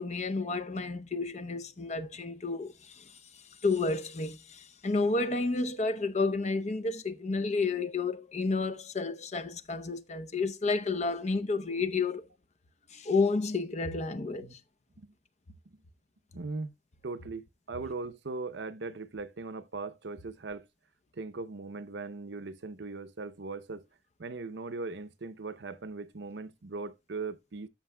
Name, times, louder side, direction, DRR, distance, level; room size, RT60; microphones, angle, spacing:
voice 1, 0.0-12.3 12.9-14.6, left 3 dB, 40° left, 0.7 m, -31 dB
voice 2, 16.3-16.7 17.0-20.7 21.2-23.8 24.2-27.7, right 3 dB, 65° right, 0.7 m, -39 dB
13.5 x 6.1 x 2.2 m
head